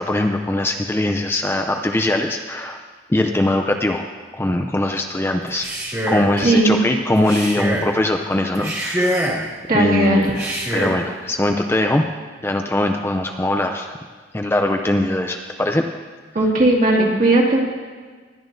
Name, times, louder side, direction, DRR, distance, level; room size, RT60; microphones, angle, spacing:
voice 1, 0.0-2.8 3.1-4.0 4.3-5.7 6.1-9.3 9.7-12.1 12.4-14.0 14.3-15.8, left 1 dB, 15° left, 4 dB, 0.4 m, -21 dB
Male speech man speaking, 5.5-6.4 7.2-7.9 8.5-9.5 10.3-11.0, right 1 dB, 15° right, 1.8 m, -24 dB
voice 2, 6.4-6.8 9.7-10.3 16.3-17.6, right 1 dB, 45° right, -2 dB, 2.1 m, -16 dB
21.5 x 11.0 x 2.6 m, 1.5 s
head